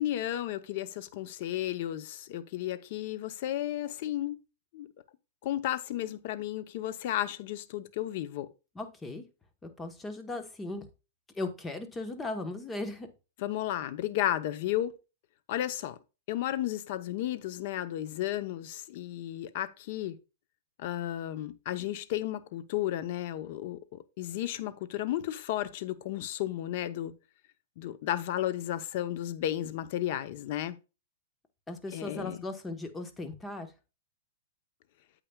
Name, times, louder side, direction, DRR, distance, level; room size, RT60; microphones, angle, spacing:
voice 1, 0.0-4.4 4.7-4.9 5.4-8.5 13.4-15.0 15.5-16.0 16.3-20.2 20.8-27.1 27.8-30.8 31.9-32.4, left 13 dB, 45° left, 0.8 m, -33 dB
voice 2, 8.7-9.2 9.6-10.9 11.4-13.1 31.7-33.7, left 2 dB, 10° left, 1.1 m, -37 dB
8.9 x 8.3 x 2.3 m
supercardioid pair, 160°, 0 cm